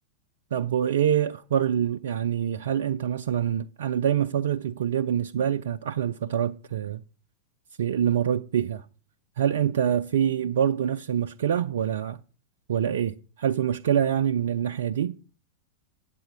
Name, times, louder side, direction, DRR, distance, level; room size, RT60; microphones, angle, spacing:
voice 1, 0.5-7.0 7.8-8.8 9.4-12.2 12.7-15.2, right 9 dB, 60° right, 0.4 m, -25 dB
9.0 x 7.8 x 5.5 m
figure-of-eight pair, 90°, 0 cm